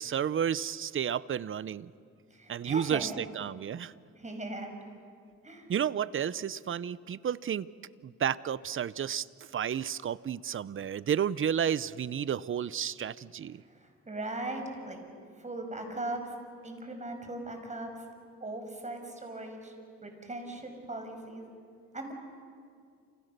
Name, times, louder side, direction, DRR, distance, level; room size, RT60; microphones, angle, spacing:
voice 1, 0.0-1.9 2.5-3.9 5.7-7.7 8.0-9.3 9.5-13.6, right 8 dB, 45° right, 18 dB, 0.7 m, -31 dB
voice 2, 2.3-3.2 4.2-4.7 5.4-5.7 13.6-15.0 15.4-16.3 16.6-18.0 18.4-19.7 20.0-21.5 21.9-22.1, right 2 dB, 25° right, 4 dB, 5.9 m, -39 dB
28.5 x 27.5 x 6.7 m, 2.3 s
cardioid pair, 90°, 30 cm